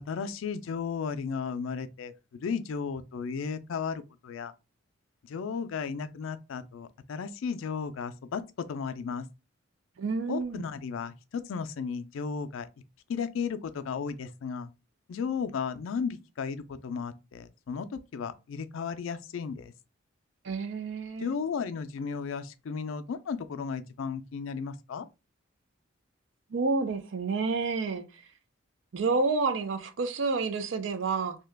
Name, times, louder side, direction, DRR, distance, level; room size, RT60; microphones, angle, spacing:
voice 1, 0.1-2.1 2.4-4.5 5.2-9.3 10.3-12.7 13.1-14.7 15.1-19.7 21.2-25.1, left 6 dB, 80° left, 0.4 m, -34 dB
voice 2, 10.0-10.6 20.4-21.3 26.5-28.0 28.9-31.4, right 4 dB, 70° right, 0.5 m, -29 dB
2.8 x 2.2 x 3.3 m
head